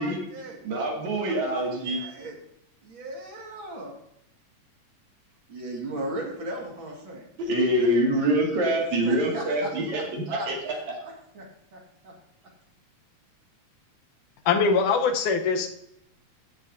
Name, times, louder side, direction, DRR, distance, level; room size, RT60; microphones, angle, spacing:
voice 1, 0.0-0.6 1.2-2.4 2.8-3.9 5.5-7.2 7.6-8.0 9.0-11.5 11.7-12.1, right 1 dB, 45° right, -1 dB, 2.4 m, -38 dB
voice 2, 0.6-2.0 7.4-10.7, right 1 dB, 70° right, -1 dB, 3.4 m, -25 dB
voice 3, 14.5-15.7, left 5 dB, 90° left, 5 dB, 2.4 m, -22 dB
15.5 x 7.5 x 2.7 m, 0.78 s
omnidirectional pair, 3.4 m